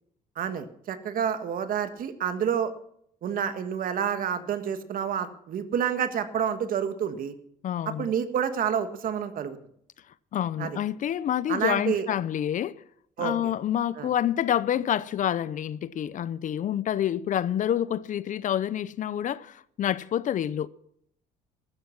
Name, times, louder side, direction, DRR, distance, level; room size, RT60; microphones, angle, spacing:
voice 1, 0.4-2.7 3.2-7.3 7.9-9.6 10.6-10.8 11.5-12.1 13.2-13.5 14.0-14.1, right 8 dB, 55° right, 1.6 m, -29 dB
voice 2, 7.6-8.1 10.3-12.8 13.2-20.7, left 10 dB, 50° left, 0.6 m, -28 dB
14.5 x 13.0 x 6.0 m
cardioid pair, 110°, 17 cm